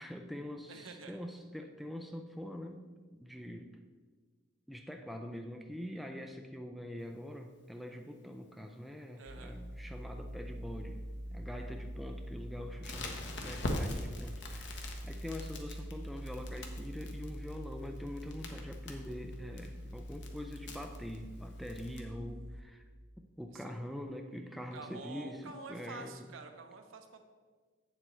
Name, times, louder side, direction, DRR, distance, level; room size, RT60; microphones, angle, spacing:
voice 1, 0.0-2.8 3.1-3.7 4.7-11.0 11.3-22.8 23.4-26.3, left 1 dB, ahead, 3 dB, 0.3 m, -44 dB
voice 2, 0.7-1.2 9.2-9.6 23.5-23.6 24.7-27.2, right 3 dB, 80° right, 5 dB, 0.8 m, -48 dB
sound 1, 9.3-22.6, equal, 50° right, 0.5 m, -45 dB
Crackle, 12.8-22.0, left 1 dB, 60° left, 0.9 m, -43 dB
8.0 x 7.5 x 3.1 m, 1.5 s
head